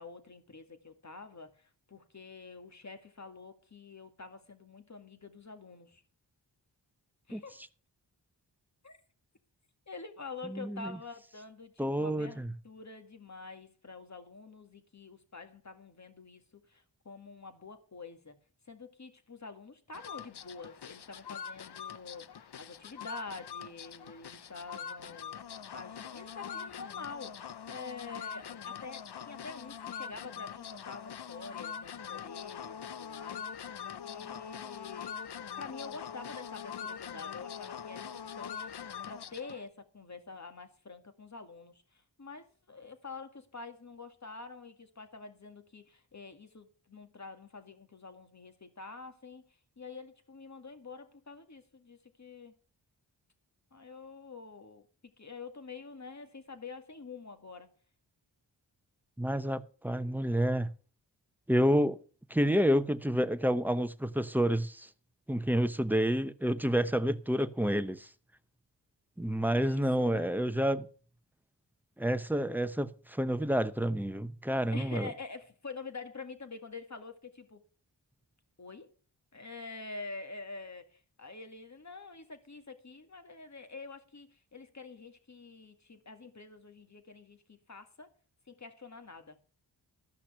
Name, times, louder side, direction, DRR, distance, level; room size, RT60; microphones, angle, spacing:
voice 1, 0.0-6.0 7.3-7.6 8.8-9.0 9.9-18.4 18.7-33.8 34.0-35.1 35.6-52.5 53.7-54.9 55.2-57.7 69.4-70.4 74.7-77.6 78.6-78.9 79.3-88.1 88.5-89.4, left 4 dB, 40° left, 2.0 m, -47 dB
voice 2, 10.5-10.9 11.8-12.5 59.2-60.7 61.5-62.0 62.3-64.9 65.3-68.1 69.2-70.9 72.0-75.1, equal, 5° right, 0.8 m, -29 dB
sound 1, 19.9-39.6, left 8 dB, 60° left, 0.8 m, -43 dB
13.5 x 5.9 x 6.8 m
cardioid pair, 45°, 45 cm